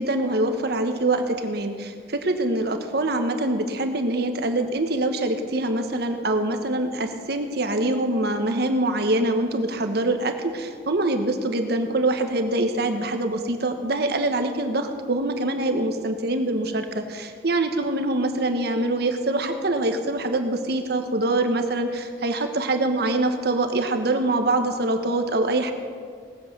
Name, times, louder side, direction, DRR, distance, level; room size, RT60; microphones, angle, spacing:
voice 1, 0.0-25.7, right 2 dB, 65° right, 6 dB, 1.2 m, -24 dB
18.5 x 8.0 x 6.7 m, 2.1 s
head